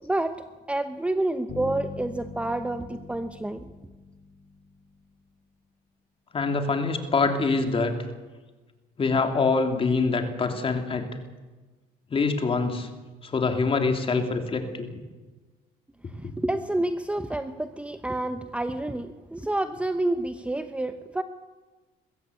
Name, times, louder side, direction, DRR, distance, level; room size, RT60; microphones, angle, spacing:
voice 1, 0.0-0.4 0.7-3.6 16.2-21.2, right 1 dB, 5° right, 9 dB, 0.9 m, -29 dB
sound 1, 1.5-5.2, left 3 dB, 60° left, 2.6 m, -42 dB
voice 2, 6.3-8.0 9.0-11.1 12.1-12.9 13.2-14.9 16.2-16.3, left 4 dB, 35° left, 5 dB, 3.0 m, -25 dB
21.5 x 15.0 x 8.3 m, 1.3 s
cardioid pair, 110°, 17 cm